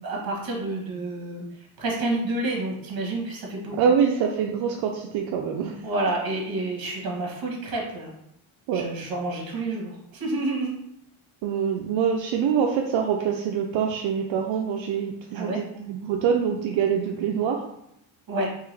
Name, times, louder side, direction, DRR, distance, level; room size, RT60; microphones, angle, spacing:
voice 1, 0.0-1.4 1.8-3.7 5.5-5.6 5.8-8.1 8.7-10.7 15.3-15.6 18.3-18.5, right 2 dB, 50° right, -1 dB, 1.5 m, -29 dB
voice 2, 3.8-5.8 8.7-8.9 11.4-17.6, right 7 dB, 75° right, 1 dB, 0.6 m, -25 dB
3.6 x 3.2 x 3.4 m, 0.78 s
cardioid pair, 120°, 46 cm